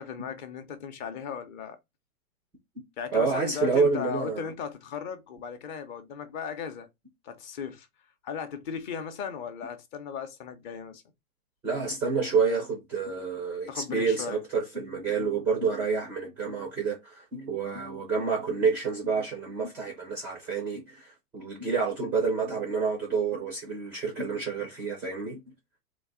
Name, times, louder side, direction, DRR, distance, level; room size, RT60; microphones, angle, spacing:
voice 1, 0.0-1.8 3.0-6.9 7.2-7.9 8.2-11.0 13.7-14.4, left 7 dB, 30° left, 0.6 m, -37 dB
voice 2, 3.1-4.5 11.6-25.4, right 5 dB, 5° right, 0.3 m, -28 dB
3.8 x 2.5 x 3.6 m
hypercardioid pair, 130°, 45 cm